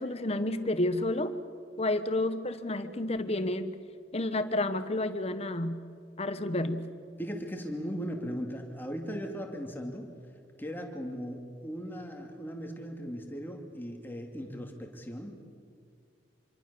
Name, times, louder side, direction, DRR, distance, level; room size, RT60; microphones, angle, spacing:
voice 1, 0.0-1.3 1.8-3.7 4.1-5.8 6.2-6.9, left 1 dB, 35° left, 10 dB, 1.2 m, -30 dB
voice 2, 7.2-10.1 10.6-15.4, equal, 10° left, 2 dB, 2.6 m, -38 dB
26.5 x 24.0 x 7.1 m, 2.2 s
head